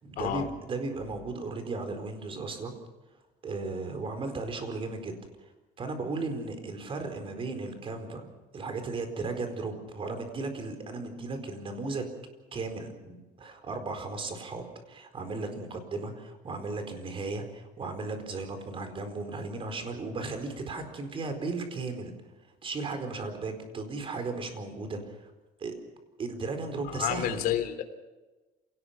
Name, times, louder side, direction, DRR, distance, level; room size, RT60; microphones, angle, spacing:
voice 1, 0.0-2.7 3.4-5.2 5.8-8.3 8.5-12.1 12.5-22.1 22.6-25.3 25.6-25.8 26.2-27.4, right 3 dB, 35° right, 7 dB, 4.4 m, -35 dB
voice 2, 26.9-27.8, left 11 dB, 65° left, 7 dB, 3.3 m, -29 dB
27.5 x 18.5 x 5.9 m, 1.2 s
cardioid pair, 135°, 16 cm